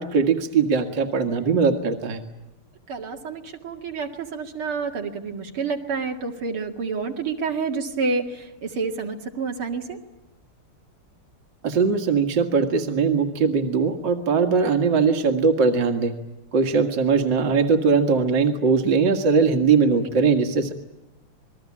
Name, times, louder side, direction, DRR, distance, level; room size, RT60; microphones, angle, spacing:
voice 1, 0.0-2.2 11.6-16.1 16.5-20.7, right 5 dB, 55° right, 6 dB, 2.5 m, -20 dB
voice 2, 2.9-10.0, right 4 dB, 80° right, 3 dB, 3.0 m, -29 dB
27.5 x 21.0 x 8.6 m, 0.94 s
omnidirectional pair, 2.4 m